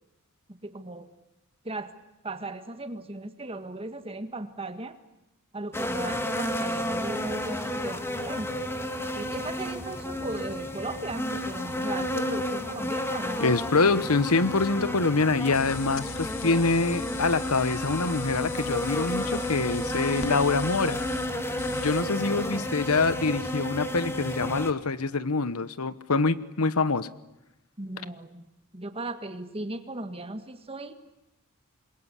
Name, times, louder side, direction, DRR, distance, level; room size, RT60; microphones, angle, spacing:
voice 1, 0.6-1.1 1.6-1.9 2.2-5.0 5.5-8.5 9.2-13.4 16.0-16.1 27.8-31.0, right 2 dB, 25° right, 9 dB, 1.8 m, -37 dB
sound 1, 5.7-24.7, left 1 dB, 10° left, 1.9 m, -32 dB
voice 2, 13.4-21.0 21.7-27.1, left 3 dB, 80° left, 15 dB, 1.1 m, -25 dB
sound 2, 15.5-22.0, left 5 dB, 65° left, 1.9 m, -41 dB
27.0 x 22.0 x 9.9 m, 0.92 s
head